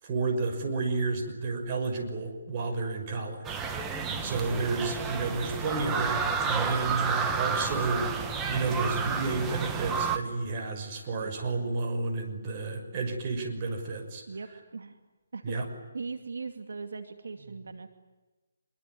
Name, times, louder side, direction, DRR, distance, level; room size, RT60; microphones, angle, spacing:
voice 1, 0.0-3.6 3.9-14.2 15.4-15.7, right 3 dB, 30° right, 4 dB, 6.1 m, -31 dB
sound 1, 3.4-10.2, right 5 dB, 10° right, 1.8 m, -31 dB
voice 2, 14.3-15.0 15.3-15.5 15.9-17.9, right 4 dB, 75° right, 8 dB, 2.5 m, -39 dB
26.0 x 23.5 x 9.6 m, 1.2 s
hypercardioid pair, 160°, 0 cm